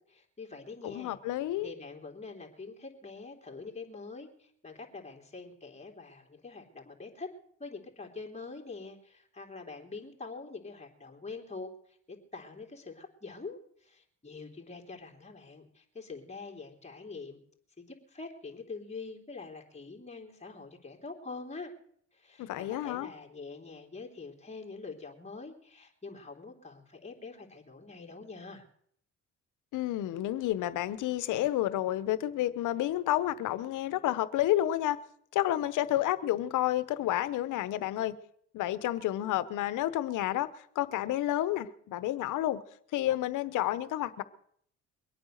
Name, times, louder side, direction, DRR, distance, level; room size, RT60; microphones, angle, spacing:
voice 1, 0.1-1.2 1.6-7.3 7.6-17.4 17.8-21.7 22.1-28.7, left 4 dB, 20° left, 3.4 m, -45 dB
voice 2, 0.8-1.7 22.4-23.1 29.7-35.0 35.3-38.2 38.5-42.6 42.9-44.2, left 13 dB, 85° left, 1.0 m, -30 dB
23.0 x 8.9 x 6.5 m
cardioid pair, 90°, 30 cm